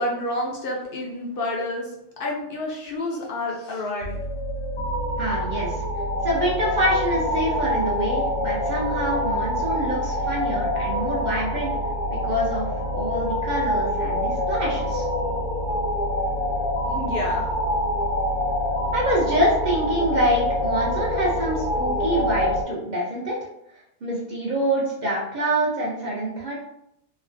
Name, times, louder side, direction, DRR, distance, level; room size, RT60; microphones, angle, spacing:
voice 1, 0.0-4.2 16.9-17.5, left 1 dB, 60° left, -2 dB, 0.7 m, -29 dB
sound 1, 4.0-22.6, left 1 dB, 90° left, 0.9 m, -26 dB
voice 2, 5.2-5.8 6.2-11.7 12.1-15.1 18.9-23.4 24.0-26.5, equal, 50° right, -5 dB, 0.7 m, -26 dB
3.2 x 2.1 x 2.5 m, 0.81 s
omnidirectional pair, 1.1 m